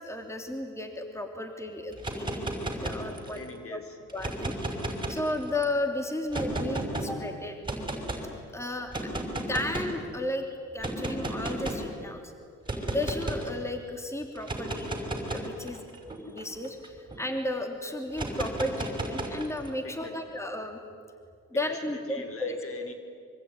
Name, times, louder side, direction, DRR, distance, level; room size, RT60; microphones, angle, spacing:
voice 1, 0.0-3.4 3.7-3.8 4.1-4.7 5.1-7.6 8.5-8.9 9.5-12.3 12.9-14.9 15.3-15.9 16.2-20.8 21.5-22.6, left 1 dB, 10° left, 4 dB, 3.2 m, -34 dB
sound 1, 1.9-3.5 4.1-5.6 6.3-7.1 7.6-8.2 8.9-10.0 10.8-11.9 12.7-13.5 14.4-17.2 18.1-19.7, right 1 dB, 15° right, 5.6 m, -33 dB
voice 2, 3.3-4.0 19.8-20.4 21.5-22.9, left 4 dB, 45° left, 6 dB, 4.1 m, -43 dB
25.0 x 24.5 x 9.9 m, 2.2 s
cardioid pair, 90°, 30 cm